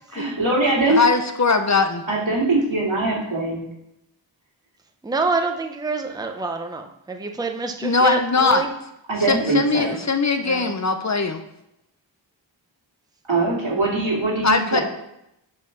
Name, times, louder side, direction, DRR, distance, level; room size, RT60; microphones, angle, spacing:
voice 1, 0.1-1.1 2.1-3.7 9.1-10.0 13.3-14.8, right 2 dB, 85° right, -4 dB, 2.3 m, -22 dB
voice 2, 0.9-2.0 7.8-8.7 9.3-11.4 14.4-14.8, left 4 dB, 35° left, 7 dB, 0.7 m, -20 dB
voice 3, 5.0-8.7 10.4-10.7, right 3 dB, 10° right, 4 dB, 0.6 m, -26 dB
7.7 x 3.7 x 5.8 m, 0.83 s
wide cardioid pair, 65°, 46 cm